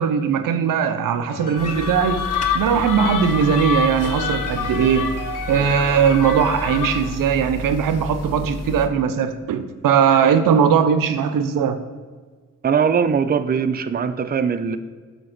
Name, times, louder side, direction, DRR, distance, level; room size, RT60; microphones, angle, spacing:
voice 1, 0.0-2.2 2.5-5.1 5.5-11.8, right 7 dB, 85° right, 10 dB, 0.5 m, -19 dB
Piano, 1.3-7.8, left 1 dB, 70° left, 1.3 m, -35 dB
sound 1, 1.5-7.2, left 7 dB, 85° left, 0.5 m, -28 dB
sound 2, 1.6-8.9, left 1 dB, 50° left, 0.8 m, -32 dB
voice 2, 12.6-14.8, right 6 dB, 30° right, 10 dB, 0.4 m, -20 dB
7.4 x 2.9 x 5.8 m, 1.5 s
supercardioid pair, 40°, 33 cm